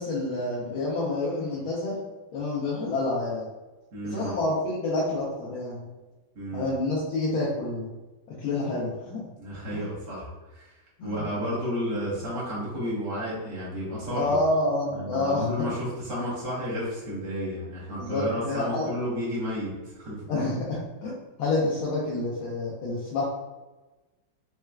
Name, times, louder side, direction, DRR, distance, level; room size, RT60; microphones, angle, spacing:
voice 1, 0.0-2.0 2.3-3.4 4.1-5.9 6.5-7.9 8.4-9.2 9.7-9.9 11.0-11.2 14.1-15.6 18.0-18.9 20.3-23.2, left 2 dB, 80° left, -6 dB, 1.5 m, -28 dB
voice 2, 3.9-4.3 6.3-6.7 9.4-10.7 11.0-14.4 14.9-20.2, equal, 60° right, -6 dB, 1.6 m, -32 dB
4.3 x 2.3 x 2.2 m, 1.1 s
omnidirectional pair, 2.2 m